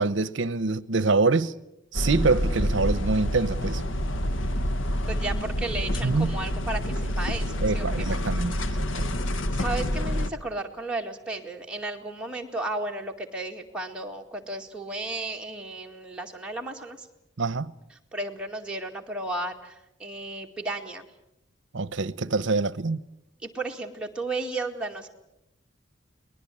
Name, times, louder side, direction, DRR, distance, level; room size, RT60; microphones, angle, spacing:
voice 1, 0.0-1.5 1.9-3.8 6.0-6.4 7.6-8.6 9.0-9.1 17.4-17.7 21.7-23.0, right 3 dB, 65° right, 0.8 m, -25 dB
sound 1, 1.9-10.3, equal, 75° left, 1.3 m, -28 dB
voice 2, 5.1-8.1 9.5-17.1 18.1-21.0 23.4-25.1, right 2 dB, 5° right, 2.1 m, -34 dB
23.0 x 20.0 x 8.5 m
head